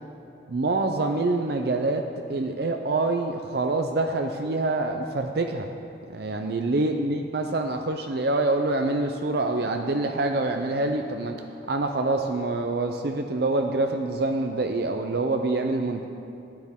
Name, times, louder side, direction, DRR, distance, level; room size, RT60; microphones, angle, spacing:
voice 1, 0.5-2.0 2.3-5.7 6.1-11.4 11.7-16.1, right 2 dB, 55° right, 4 dB, 0.5 m, -26 dB
13.5 x 9.5 x 3.7 m, 2.7 s
head